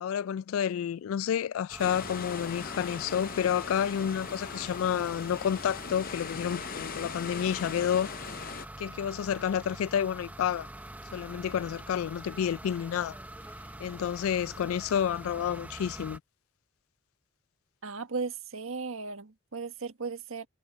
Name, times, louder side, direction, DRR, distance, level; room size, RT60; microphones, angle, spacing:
voice 1, 0.0-8.1 8.8-10.7 11.1-13.2 13.8-16.2, left 9 dB, 80° left, 0.3 m, -30 dB
sound 1, 1.7-16.2, right 1 dB, 10° right, 0.8 m, -45 dB
sound 2, 1.8-8.7, left 6 dB, 45° left, 0.7 m, -40 dB
voice 2, 17.8-20.5, right 4 dB, 80° right, 1.6 m, -36 dB
head